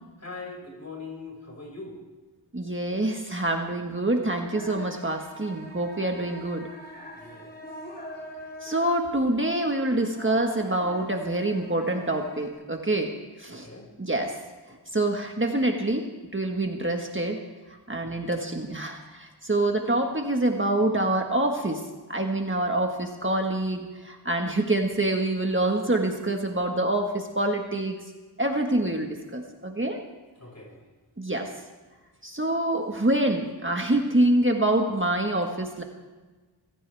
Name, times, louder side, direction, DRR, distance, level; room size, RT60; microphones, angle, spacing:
voice 1, 0.2-2.0 7.2-7.6 13.5-13.9 30.4-30.8, left 3 dB, 40° left, -1 dB, 6.0 m, -41 dB
voice 2, 2.5-6.6 8.6-13.1 13.4-13.7 14.0-14.3 14.7-16.1 16.3-17.4 17.9-21.8 22.1-28.0 28.4-30.0 31.2-31.5 32.2-35.8, right 1 dB, 30° right, 2 dB, 1.6 m, -26 dB
sound 1, 4.5-12.5, equal, 20° left, 3.3 m, -43 dB
24.0 x 15.5 x 3.5 m, 1.3 s
wide cardioid pair, 70°, 42 cm